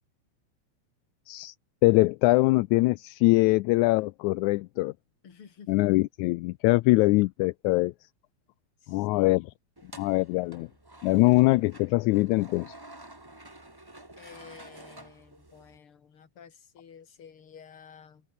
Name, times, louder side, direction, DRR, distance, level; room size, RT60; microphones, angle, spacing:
voice 1, 1.8-4.9 5.7-7.9 8.9-9.5 10.0-10.7 11.0-12.7, left 21 dB, 80° left, 1.9 m, -23 dB
voice 2, 5.2-5.8 8.8-9.4 14.2-18.2, left 7 dB, 45° left, 3.2 m, -51 dB
sound 1, 9.8-15.8, right 1 dB, 10° right, 1.4 m, -50 dB
omnidirectional pair, 3.5 m